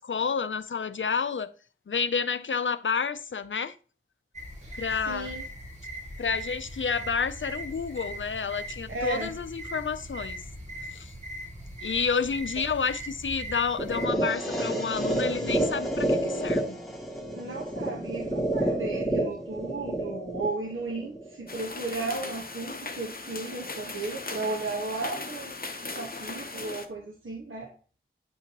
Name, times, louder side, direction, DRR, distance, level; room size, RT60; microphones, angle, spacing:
voice 1, 0.0-1.5 1.9-3.7 4.8-5.3 6.2-10.4 10.9-11.1 11.8-16.8, left 5 dB, 65° left, 0.6 m, -30 dB
sound 1, 4.3-14.1, right 1 dB, 35° right, 2.3 m, -40 dB
voice 2, 4.6-5.4 8.9-9.3 17.3-25.5 25.9-27.7, right 3 dB, 75° right, 1.4 m, -35 dB
sound 2, 13.8-21.8, right 1 dB, ahead, 2.2 m, -29 dB
sound 3, 21.5-26.9, left 3 dB, 45° left, 0.9 m, -38 dB
9.4 x 5.6 x 3.0 m
wide cardioid pair, 50°, 21 cm